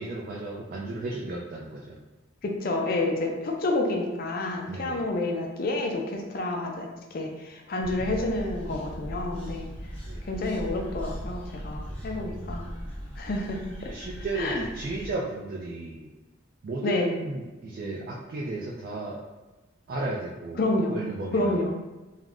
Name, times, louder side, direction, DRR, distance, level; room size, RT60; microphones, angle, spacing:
voice 1, 0.0-2.0 4.7-5.0 10.1-10.2 11.9-12.4 13.9-16.1 16.6-19.2 19.9-20.6 20.9-21.6, right 2 dB, 45° right, -3 dB, 0.3 m, -34 dB
voice 2, 2.4-9.7 10.3-12.7 13.2-13.9 14.4-14.6 16.8-17.2 20.6-21.0 21.3-21.7, left 2 dB, 45° left, 1 dB, 0.4 m, -29 dB
sound 1, 7.8-15.2, equal, 5° left, 0.8 m, -38 dB
2.4 x 2.1 x 3.5 m, 1.1 s
head